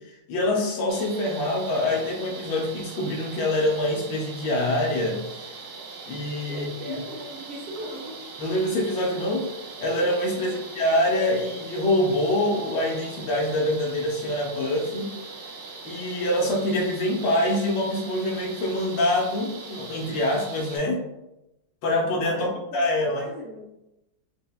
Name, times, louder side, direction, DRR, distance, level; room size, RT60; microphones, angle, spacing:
voice 1, 0.3-5.5 6.1-7.0 8.4-9.5 9.8-15.1 15.8-21.0 21.8-23.3, left 1 dB, 75° left, 0 dB, 1.2 m, -25 dB
sound 1, 0.9-20.8, right 4 dB, 90° right, 0.7 m, -41 dB
voice 2, 6.4-8.2 10.3-10.6 22.3-23.7, right 1 dB, 65° right, -5 dB, 0.9 m, -38 dB
5.3 x 2.1 x 2.3 m, 0.92 s
omnidirectional pair, 2.3 m